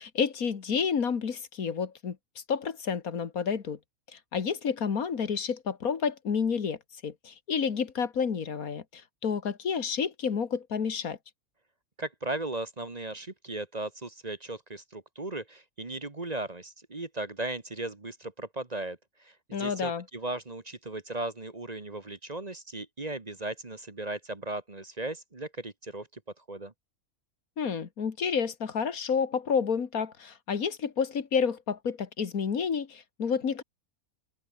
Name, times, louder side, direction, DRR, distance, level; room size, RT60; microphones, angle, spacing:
voice 1, 0.0-2.2 2.5-3.8 4.1-6.8 7.0-11.2 19.5-20.0 27.6-33.6, left 6 dB, 80° left, 2.1 m, -30 dB
voice 2, 12.0-26.1 26.4-26.7, right 2 dB, 30° right, 1.6 m, -37 dB
open air
omnidirectional pair, 1.5 m